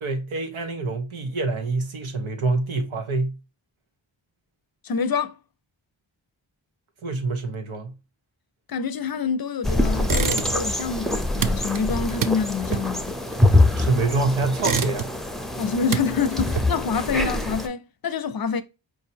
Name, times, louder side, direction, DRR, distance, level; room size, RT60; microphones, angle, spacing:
voice 1, 0.0-3.4 7.0-7.9 13.7-15.1, right 3 dB, 90° right, 0.9 m, -26 dB
voice 2, 4.8-5.4 8.7-13.1 15.6-18.6, left 5 dB, 50° left, 0.5 m, -26 dB
sound 1, 9.6-17.7, left 1 dB, ahead, 0.5 m, -24 dB
sound 2, 10.0-10.8 11.1-14.0 14.4-15.3 15.7-17.0, right 7 dB, 45° right, 0.5 m, -29 dB
4.6 x 2.7 x 2.7 m
cardioid pair, 45°, 47 cm